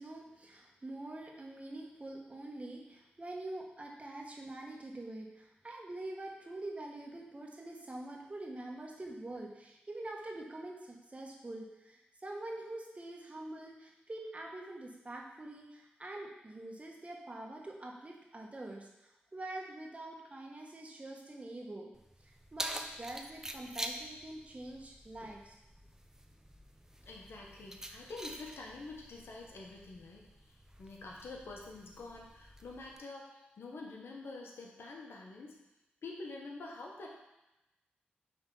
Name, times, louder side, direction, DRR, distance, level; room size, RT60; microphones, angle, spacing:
voice 1, 0.0-21.9 22.2-25.5, right 2 dB, 35° right, -1 dB, 1.5 m, -45 dB
Keys jangling, 21.9-33.0, right 1 dB, 10° right, 0.7 m, -47 dB
voice 2, 27.0-35.6 36.0-37.2, left 3 dB, 75° left, 0 dB, 1.1 m, -47 dB
5.6 x 3.5 x 5.5 m, 0.95 s
cardioid pair, 45°, 4 cm